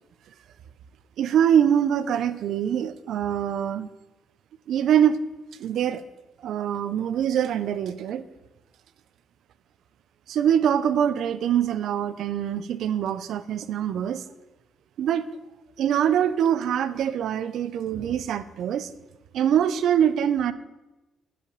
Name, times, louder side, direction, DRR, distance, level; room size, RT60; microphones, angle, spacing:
voice 1, 1.2-3.9 4.7-5.2 5.6-6.0 6.4-8.2 10.3-14.2 15.0-15.3 15.8-18.9 19.3-20.5, right 9 dB, 75° right, 14 dB, 0.6 m, -24 dB
10.5 x 5.1 x 6.6 m, 1.1 s
cardioid pair, 90°, 0 cm